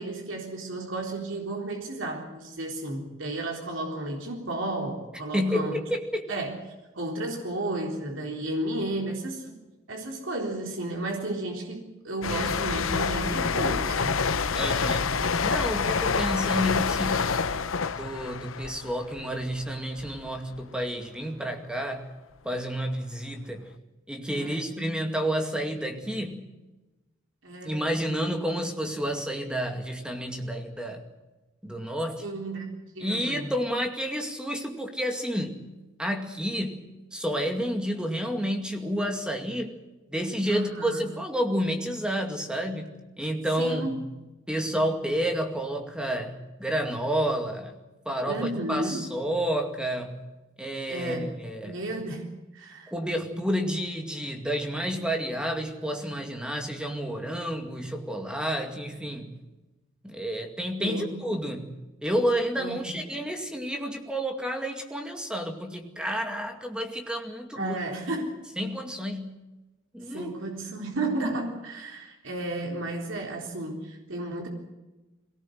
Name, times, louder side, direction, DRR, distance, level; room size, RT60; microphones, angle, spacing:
voice 1, 0.0-5.8 6.3-6.6 6.9-9.6 9.9-14.2 15.2-15.3 24.3-24.5 27.4-27.8 32.2-33.5 40.5-41.0 43.6-44.0 48.3-49.1 50.9-51.3 51.6-52.9 60.8-61.2 62.6-63.0 67.6-68.4 70.1-74.5, right 2 dB, 70° right, 1 dB, 3.8 m, -33 dB
voice 2, 5.3-6.3 14.5-15.1 15.4-17.5 17.9-22.1 22.4-23.7 24.1-26.5 27.6-31.0 31.6-32.2 33.0-35.5 36.0-36.8 37.1-39.7 40.1-44.0 44.5-47.8 48.1-50.3 50.6-51.8 52.9-59.4 60.0-61.7 62.0-67.8 68.6-69.4 69.9-70.3, equal, 5° right, 4 dB, 2.2 m, -30 dB
sound 1, 12.2-19.7 20.0-20.3, left 5 dB, 90° left, 0.9 m, -27 dB
23.0 x 18.0 x 7.8 m, 1.1 s
head